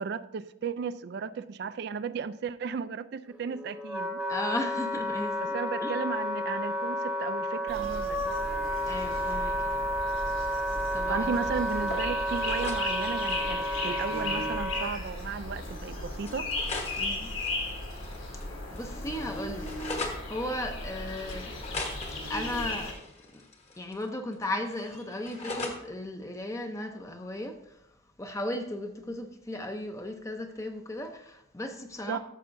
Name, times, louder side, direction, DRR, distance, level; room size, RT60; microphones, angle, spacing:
voice 1, 0.0-4.2 5.4-8.4 11.1-16.5 32.1-32.2, right 5 dB, 55° right, 0.3 m, -34 dB
Wind instrument woodwind instrument, 3.3-14.9, equal, 5° right, 0.9 m, -31 dB
voice 2, 4.3-5.5 5.8-5.9 8.9-9.9 10.9-11.3 17.0-17.3 18.7-21.6 22.3-23.0 23.3-23.4 23.8-27.8 28.2-32.2, left 1 dB, 15° left, 0.6 m, -36 dB
sound 1, 7.7-22.9, left 2 dB, 75° left, 2.8 m, -36 dB
sound 2, 10.7-11.4 11.6-12.8 13.1-13.6 14.7-14.8 15.1-15.2 16.2-18.5 18.8-20.2 21.3-24.1 24.3-25.8, left 3 dB, 30° left, 1.2 m, -41 dB
13.0 x 6.7 x 2.6 m
head